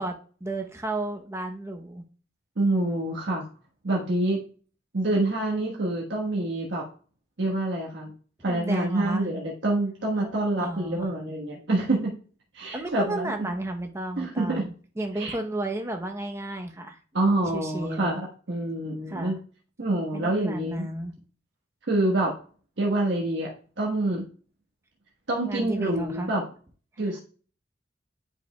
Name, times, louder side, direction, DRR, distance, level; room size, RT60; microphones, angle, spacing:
voice 1, 0.0-2.0 8.5-9.3 10.2-10.3 10.6-11.1 12.7-17.0 17.5-18.1 19.1-19.4 20.1-21.1 25.4-26.3 27.0-27.1, right 1 dB, 15° right, 4 dB, 0.7 m, -33 dB
voice 2, 2.6-3.4 3.8-4.4 4.9-6.8 7.4-8.1 8.4-12.1 12.5-13.5 14.2-14.6 15.2-15.4 17.1-19.4 19.8-20.9 21.9-22.3 22.8-23.5 23.8-24.2 25.3-26.4 27.0-27.2, right 2 dB, 85° right, -3 dB, 1.3 m, -26 dB
9.3 x 4.9 x 2.2 m, 0.40 s
head